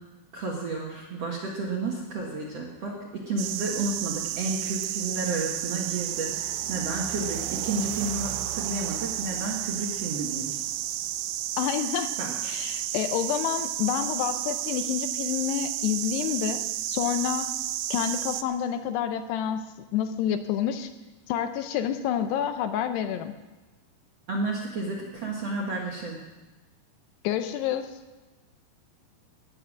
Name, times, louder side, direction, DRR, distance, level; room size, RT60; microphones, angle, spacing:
voice 1, 0.3-3.0 3.2-10.6 12.2-12.4 24.3-26.2, right 3 dB, 55° right, -2 dB, 1.8 m, -31 dB
sound 1, 3.4-18.4, right 13 dB, 80° right, 2.4 m, -32 dB
voice 2, 11.6-12.1 12.4-17.5 17.9-19.6 19.9-20.9 21.3-23.3 27.2-27.9, left 9 dB, 80° left, 9 dB, 2.7 m, -28 dB
18.5 x 7.1 x 7.3 m, 1.2 s
omnidirectional pair, 5.0 m